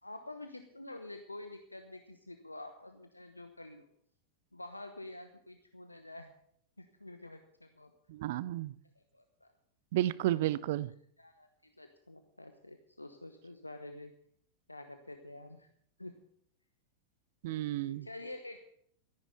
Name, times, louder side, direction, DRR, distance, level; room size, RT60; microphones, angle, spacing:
voice 1, 0.0-3.9 4.5-6.3 6.8-7.9 9.0-9.5 11.2-14.1 14.7-15.7 16.0-16.1 17.5-18.6, left 2 dB, 85° left, 1.0 m, -48 dB
voice 2, 8.1-8.7 9.9-10.9 17.4-18.1, right 14 dB, 55° right, 0.5 m, -32 dB
14.0 x 10.5 x 6.8 m
figure-of-eight pair, 90°, 0 cm